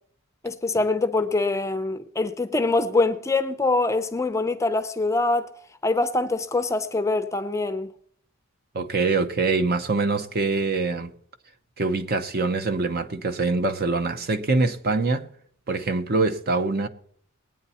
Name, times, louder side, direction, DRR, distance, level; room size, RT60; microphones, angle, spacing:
voice 1, 0.4-5.5 5.8-7.9, left 2 dB, 15° left, 0.6 m, -24 dB
voice 2, 8.7-11.1 11.8-15.3 15.7-16.9, right 3 dB, 45° right, 0.8 m, -24 dB
20.0 x 9.0 x 4.2 m
head